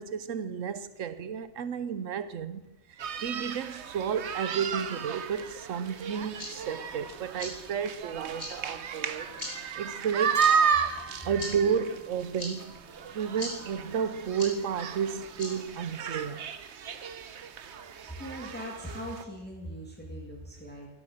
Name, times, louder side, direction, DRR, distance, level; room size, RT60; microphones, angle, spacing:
voice 1, 0.0-2.6 2.9-9.3 9.8-10.5 11.2-12.8 13.1-16.4, right 7 dB, 80° right, 1.2 m, -32 dB
sound 1, 3.0-19.2, right 7 dB, 65° right, 1.1 m, -33 dB
sound 2, 6.1-16.3, left 1 dB, 80° left, 3.7 m, -45 dB
Keyboard (musical), 10.3-12.3, right 1 dB, 15° right, 2.7 m, -43 dB
voice 2, 18.2-20.9, equal, 10° left, 2.1 m, -40 dB
13.0 x 11.5 x 6.4 m
omnidirectional pair, 1.3 m